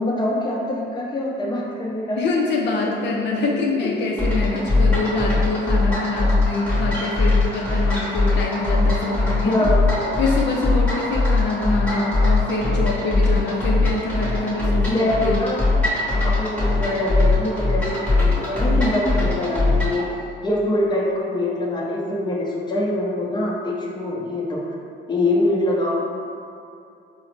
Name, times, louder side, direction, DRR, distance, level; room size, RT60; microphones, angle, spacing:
voice 1, 0.0-2.2 4.3-4.7 9.4-10.2 14.9-15.6 16.2-20.0 20.4-24.6 25.1-26.0, left 1 dB, 20° left, -4 dB, 0.6 m, -24 dB
voice 2, 2.2-9.7 10.2-15.5, left 2 dB, 65° left, -2 dB, 0.4 m, -25 dB
sound 1, 4.2-20.0, left 3 dB, 5° left, 1.0 m, -21 dB
3.9 x 2.0 x 3.1 m, 2.5 s
cardioid pair, 90°, 20 cm